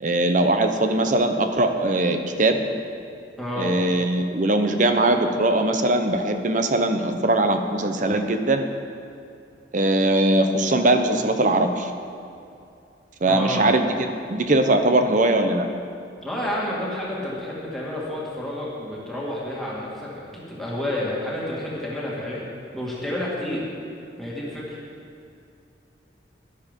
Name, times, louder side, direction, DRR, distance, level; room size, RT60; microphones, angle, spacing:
voice 1, 0.0-2.6 3.6-8.7 9.7-11.9 13.2-15.7, right 2 dB, 45° right, 6 dB, 0.9 m, -21 dB
voice 2, 3.4-3.8 13.3-13.7 16.2-22.5 22.7-23.6 24.2-24.8, left 1 dB, ahead, -7 dB, 2.4 m, -30 dB
12.0 x 10.5 x 5.4 m, 2.5 s
head